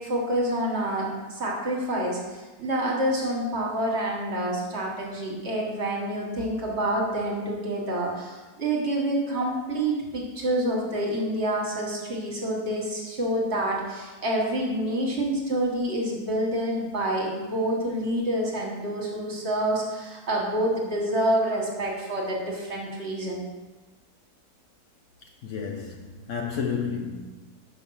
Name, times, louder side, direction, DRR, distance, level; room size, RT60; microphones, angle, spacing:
voice 1, 0.0-23.4, right 1 dB, 45° right, 1.6 m, -27 dB
voice 2, 25.4-27.2, left 6 dB, 60° left, 0.9 m, -31 dB
6.3 x 5.6 x 5.5 m
omnidirectional pair, 1.6 m